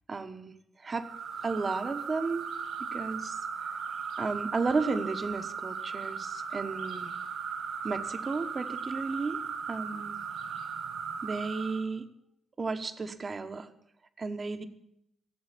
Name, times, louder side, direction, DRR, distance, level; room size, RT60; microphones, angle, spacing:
voice 1, 0.1-1.1 1.4-2.5 2.9-3.7 4.2-7.1 7.8-9.4 9.7-10.2 11.2-12.1 12.6-13.7 14.2-14.7, right 4 dB, 30° right, 9 dB, 1.2 m, -33 dB
sound 1, 1.0-11.9, right 6 dB, 70° right, 2.1 m, -37 dB
16.0 x 8.0 x 9.9 m, 0.78 s
cardioid pair, 135°, 0 cm